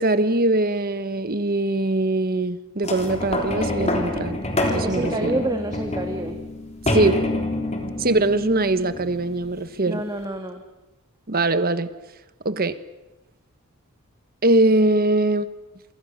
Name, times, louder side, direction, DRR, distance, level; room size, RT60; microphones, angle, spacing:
voice 1, 0.0-4.4 4.7-5.4 6.9-7.2 8.0-10.0 11.3-11.9 12.4-12.8 14.4-15.5, right 2 dB, 45° right, 12 dB, 1.3 m, -22 dB
sound 1, 2.8-9.6 10.2-10.3, left 1 dB, 30° left, 3.5 m, -27 dB
voice 2, 4.8-6.4 9.9-10.6, right 1 dB, 15° right, 5 dB, 1.6 m, -28 dB
28.5 x 25.0 x 6.5 m, 1.1 s
head